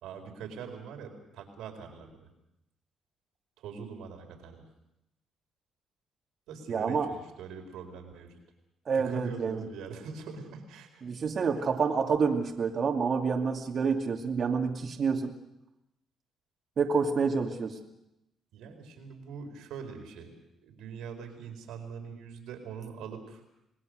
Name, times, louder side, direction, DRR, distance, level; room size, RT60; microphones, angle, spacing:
voice 1, 0.0-2.3 3.6-4.6 6.5-8.3 8.9-11.1 18.5-20.3 20.6-23.4, right 6 dB, 90° right, 4 dB, 4.5 m, -43 dB
voice 2, 6.7-7.1 8.9-9.6 11.0-15.4 16.8-17.8, right 5 dB, 50° right, 2 dB, 2.6 m, -28 dB
27.5 x 19.5 x 6.5 m, 0.86 s
cardioid pair, 90°, 0 cm